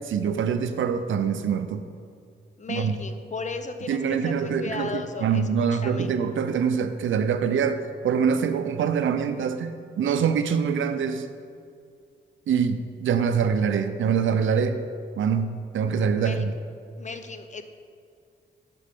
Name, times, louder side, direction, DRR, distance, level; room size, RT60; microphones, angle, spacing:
voice 1, 0.0-1.8 2.7-2.9 3.9-11.3 12.5-14.8 15.2-16.5, right 6 dB, 75° right, 10 dB, 0.5 m, -24 dB
voice 2, 2.6-6.1 16.2-16.4 17.0-17.6, left 4 dB, 40° left, 8 dB, 0.7 m, -35 dB
8.4 x 6.5 x 3.6 m, 2.2 s
cardioid pair, 60°, 20 cm